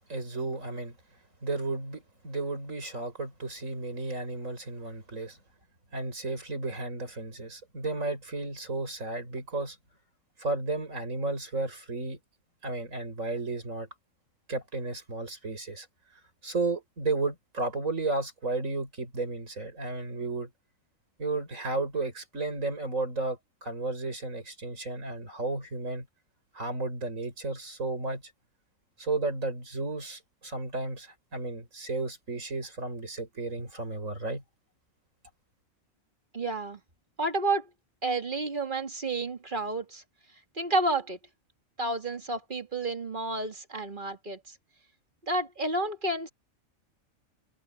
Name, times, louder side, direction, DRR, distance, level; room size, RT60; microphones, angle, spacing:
voice 1, 0.1-1.0 1.4-5.4 5.9-9.8 10.4-12.2 12.6-13.9 14.5-15.9 16.4-20.5 21.2-26.1 26.5-28.2 29.0-34.4, right 3 dB, 70° right, 7.1 m, -33 dB
voice 2, 36.3-36.8 37.2-37.7 38.0-40.0 40.6-41.2 41.8-44.5 45.2-46.3, right 2 dB, 35° right, 2.4 m, -30 dB
omnidirectional pair, 1.4 m